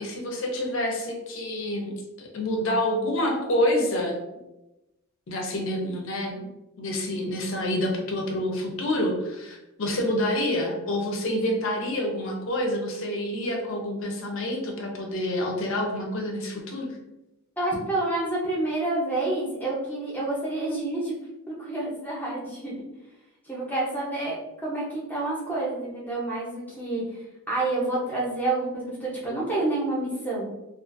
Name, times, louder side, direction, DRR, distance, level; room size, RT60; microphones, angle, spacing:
voice 1, 0.0-1.9 2.2-4.2 5.3-6.4 6.8-16.9, left 1 dB, 60° left, 1 dB, 0.5 m, -27 dB
voice 2, 17.6-21.2 21.5-22.7 23.5-27.0 27.5-30.5, right 2 dB, 10° left, -5 dB, 0.6 m, -28 dB
2.4 x 2.4 x 2.5 m, 0.95 s
head